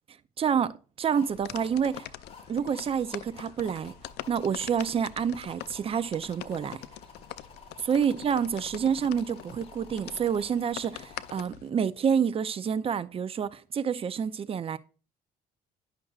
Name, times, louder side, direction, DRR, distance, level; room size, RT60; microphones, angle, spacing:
voice 1, 0.4-0.7 1.0-2.1 2.5-3.9 4.3-6.8 7.9-14.8, right 7 dB, 35° right, 0.5 m, -28 dB
sound 1, 1.1-11.4, left 4 dB, 35° left, 2.0 m, -51 dB
sound 2, 1.2-11.7, left 15 dB, 80° left, 0.4 m, -44 dB
9.9 x 5.9 x 2.4 m
cardioid pair, 110°, 17 cm